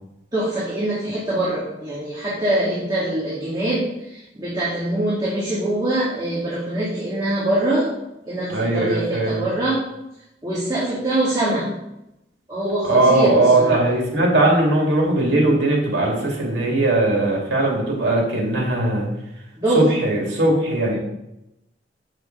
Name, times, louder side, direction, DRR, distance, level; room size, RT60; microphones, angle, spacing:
voice 1, 0.3-7.9 8.3-9.8 10.4-11.7 12.5-13.8 19.6-19.8 20.9-21.0, right 1 dB, 20° right, -9 dB, 2.3 m, -23 dB
voice 2, 8.5-9.4 12.9-19.1 19.7-20.9, right 2 dB, 75° right, -2 dB, 2.3 m, -19 dB
7.8 x 6.7 x 3.9 m, 0.88 s
head